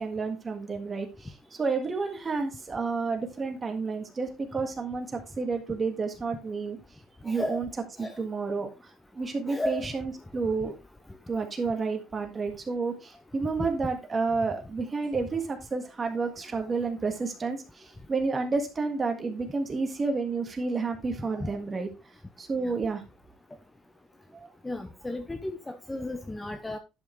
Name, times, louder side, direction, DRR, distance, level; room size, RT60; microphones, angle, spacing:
voice 1, 0.0-6.8 7.2-7.7 8.0-10.8 11.3-21.9 22.4-23.0 24.3-24.5, right 4 dB, 20° right, 5 dB, 1.7 m, -30 dB
voice 2, 7.3-7.6 8.0-8.1 9.5-9.9 13.6-13.7 21.4-21.5 22.6-22.7 24.6-26.8, left 2 dB, 10° left, 8 dB, 0.7 m, -34 dB
10.5 x 5.7 x 3.2 m, 0.27 s
cardioid pair, 140°, 0 cm